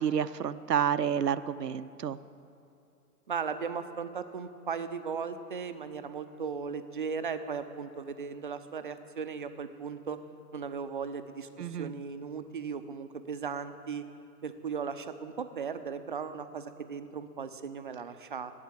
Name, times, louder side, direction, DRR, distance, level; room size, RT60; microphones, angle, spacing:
voice 1, 0.0-2.2 11.6-11.9, right 8 dB, 80° right, 14 dB, 0.5 m, -29 dB
voice 2, 3.3-10.2 10.5-14.1 14.4-18.5, right 6 dB, 35° right, 10 dB, 0.4 m, -37 dB
11.0 x 8.6 x 7.4 m, 2.6 s
figure-of-eight pair, 125°, 47 cm